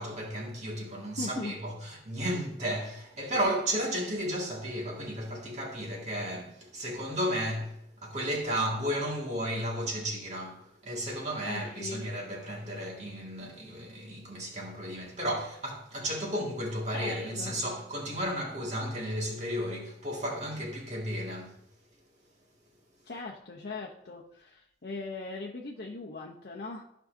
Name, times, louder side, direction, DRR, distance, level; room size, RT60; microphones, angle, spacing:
voice 1, 0.0-21.6, equal, 40° right, 2.0 m, -33 dB
voice 2, 1.2-1.6 11.4-12.0 16.9-17.6 23.0-26.8, left 3 dB, 60° left, 0.8 m, -40 dB
13.5 x 5.5 x 2.7 m
head